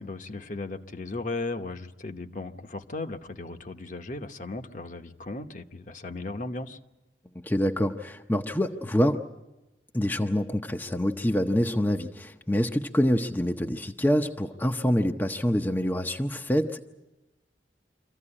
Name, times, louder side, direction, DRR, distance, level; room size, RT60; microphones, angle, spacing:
voice 1, 0.0-6.8, left 3 dB, 45° left, 6 dB, 1.0 m, -36 dB
voice 2, 7.4-9.2 9.9-16.8, equal, 10° left, 4 dB, 0.7 m, -26 dB
25.0 x 15.0 x 9.9 m, 1.0 s
head